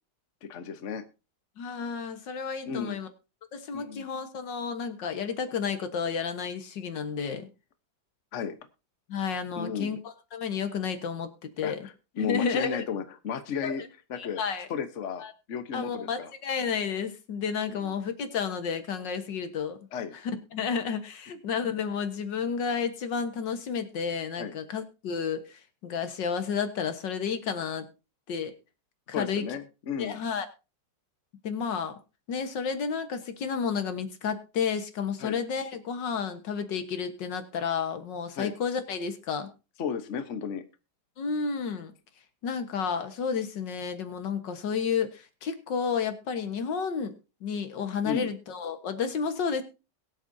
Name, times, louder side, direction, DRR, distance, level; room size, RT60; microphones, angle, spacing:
voice 1, 0.4-1.0 2.7-3.0 3.7-4.1 8.3-8.5 9.5-10.0 11.6-13.8 14.1-14.4 14.7-15.2 15.5-16.3 17.7-17.9 19.9-20.2 24.4-24.5 29.1-30.2 35.2-35.4 38.4-38.5 39.8-40.6 48.0-48.3, left 6 dB, 50° left, 9 dB, 1.3 m, -34 dB
voice 2, 1.6-3.1 3.5-7.5 9.1-11.8 12.2-12.8 13.6-13.7 14.1-14.7 15.2-15.3 15.7-19.8 20.5-27.9 28.3-28.5 29.2-29.5 30.0-30.5 31.4-31.9 32.3-39.5 41.2-41.9 42.4-47.1 47.4-49.6, left 6 dB, 85° left, 8 dB, 2.0 m, -31 dB
22.0 x 8.0 x 2.7 m, 0.30 s
omnidirectional pair, 1.9 m